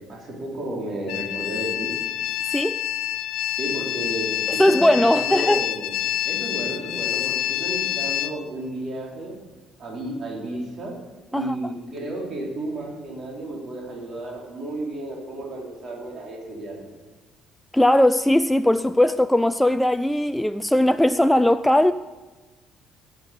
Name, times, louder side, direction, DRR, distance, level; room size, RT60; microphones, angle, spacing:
voice 1, 0.0-1.9 3.6-5.9 6.2-7.3 7.6-9.3 9.8-10.9 11.3-16.9, right 1 dB, 45° right, 4.3 m, -32 dB
sound 1, 1.1-8.3, left 13 dB, 60° left, 0.5 m, -27 dB
voice 2, 2.5-2.8 4.5-5.7 11.3-11.6 17.7-21.9, left 1 dB, 5° left, 0.4 m, -19 dB
18.0 x 8.4 x 5.3 m
figure-of-eight pair, 45°, 0 cm